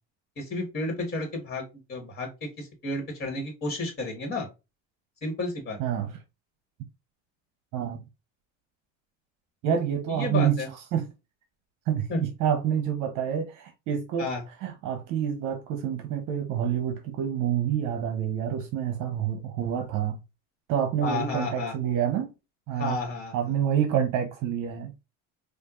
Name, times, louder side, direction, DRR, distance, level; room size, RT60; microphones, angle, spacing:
voice 1, 0.4-4.5 5.2-5.8 10.1-10.7 12.1-12.2 14.2-14.4 21.0-21.7 22.8-23.4, left 2 dB, 30° left, 1.6 m, -31 dB
voice 2, 5.8-6.2 7.7-8.0 9.6-10.6 10.9-11.1 11.9-14.3 14.6-20.2 20.7-22.3 22.7-23.0 23.3-25.0, right 9 dB, 60° right, 0.9 m, -28 dB
4.5 x 2.5 x 2.4 m
supercardioid pair, 110°, 35 cm